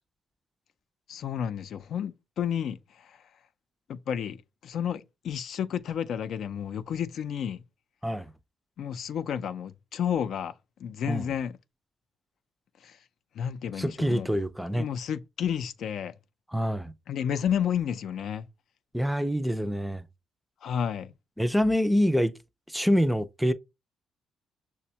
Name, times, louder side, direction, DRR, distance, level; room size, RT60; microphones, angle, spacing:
voice 1, 1.1-3.2 3.9-7.6 8.8-10.5 10.8-11.6 12.8-13.0 13.3-14.3 14.7-16.1 17.1-18.5 20.6-21.1, left 8 dB, 70° left, 0.4 m, -31 dB
voice 2, 13.8-14.9 16.5-16.9 18.9-20.1 21.4-22.3 22.7-23.5, equal, ahead, 0.4 m, -26 dB
5.9 x 2.1 x 2.7 m
cardioid pair, 90°, 0 cm